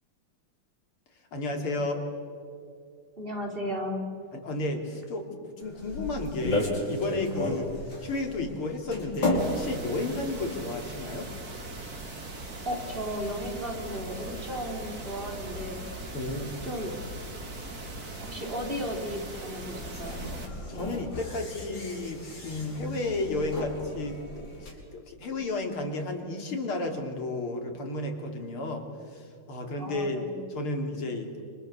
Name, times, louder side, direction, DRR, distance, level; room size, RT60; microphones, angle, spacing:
voice 1, 1.3-2.0 4.3-7.7 8.0-11.3 16.1-16.6 20.7-30.3 30.5-31.3, left 2 dB, 85° left, 3 dB, 3.9 m, -32 dB
voice 2, 3.2-4.0 12.6-15.8 16.6-16.9 18.3-20.2 20.7-21.0 29.8-30.3, equal, 25° right, 0 dB, 4.6 m, -35 dB
sound 1, 5.6-24.7, left 1 dB, 60° left, 5.8 m, -36 dB
sound 2, 9.4-20.5, right 2 dB, 45° right, 3.5 m, -40 dB
29.0 x 27.5 x 7.0 m, 2.3 s
omnidirectional pair, 2.3 m